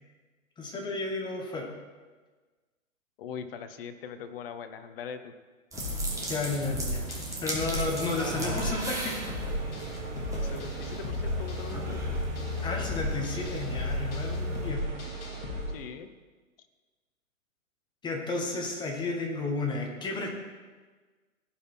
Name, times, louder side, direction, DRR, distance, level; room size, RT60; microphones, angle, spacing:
voice 1, 0.6-1.7 6.3-7.1 7.4-9.2 12.6-14.9 18.0-20.3, left 3 dB, 10° left, 1 dB, 1.3 m, -32 dB
voice 2, 3.2-5.3 10.3-12.1 15.7-16.1, left 7 dB, 45° left, 9 dB, 0.9 m, -41 dB
sound 1, 5.7-14.7, left 1 dB, 10° right, 1.6 m, -35 dB
sound 2, 5.8-15.6, left 1 dB, 60° left, 1.9 m, -36 dB
sound 3, 7.7-15.8, right 4 dB, 35° right, 2.3 m, -40 dB
16.0 x 5.6 x 4.5 m, 1.4 s
hypercardioid pair, 140°, 41 cm